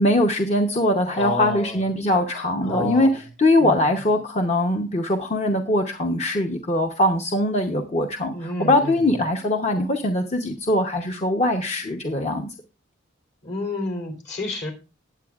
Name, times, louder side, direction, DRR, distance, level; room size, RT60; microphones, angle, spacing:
voice 1, 0.0-12.5, left 1 dB, 35° left, 4 dB, 0.9 m, -22 dB
voice 2, 1.1-1.8 2.6-3.1 3.6-3.9 8.3-9.0 13.4-14.7, left 2 dB, 60° left, 5 dB, 3.3 m, -29 dB
19.5 x 7.9 x 2.4 m, 0.32 s
head